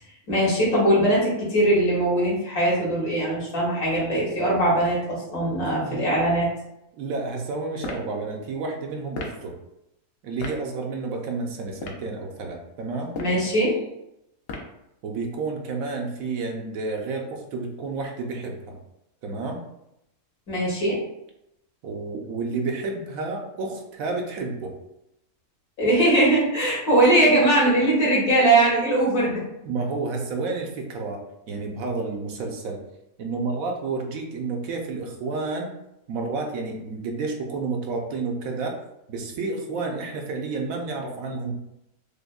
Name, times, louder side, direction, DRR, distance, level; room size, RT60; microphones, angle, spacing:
voice 1, 0.3-6.5 13.1-13.8 20.5-21.0 25.8-29.4, right 1 dB, 80° left, -6 dB, 1.9 m, -21 dB
voice 2, 5.6-6.0 7.0-9.6 10.2-13.1 15.0-18.8 19.2-19.6 21.8-24.7 29.6-31.2 31.5-32.8 33.2-35.7 36.1-38.7 39.1-41.5, right 3 dB, 70° right, 1 dB, 1.0 m, -30 dB
sound 1, 7.8-8.1 9.1-9.4 10.4-10.6 11.7-12.1 13.0-13.4 14.5-14.8, left 3 dB, 65° left, 0.6 m, -34 dB
5.0 x 2.1 x 2.3 m, 0.83 s
omnidirectional pair, 1.6 m